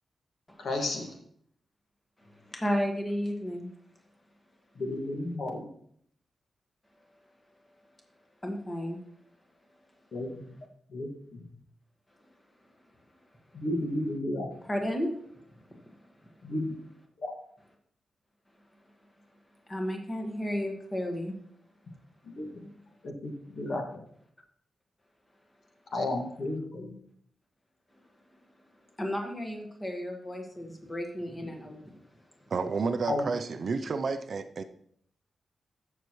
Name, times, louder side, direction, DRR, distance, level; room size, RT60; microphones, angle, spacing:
voice 1, 0.6-1.1 4.8-5.7 10.1-10.5 10.9-11.1 13.5-14.5 16.4-16.7 17.2-17.3 22.2-22.7 23.0-24.0 25.9-27.0 33.1-33.2, left 1 dB, 55° left, 1.9 m, -33 dB
voice 2, 2.5-3.7 8.4-9.0 14.7-15.1 15.6-15.9 16.2-16.3 19.7-21.3 29.0-31.8, equal, 15° left, 1.5 m, -33 dB
voice 3, 32.5-34.6, right 4 dB, 45° right, 0.5 m, -30 dB
15.0 x 6.5 x 3.1 m
wide cardioid pair, 170°, 0 cm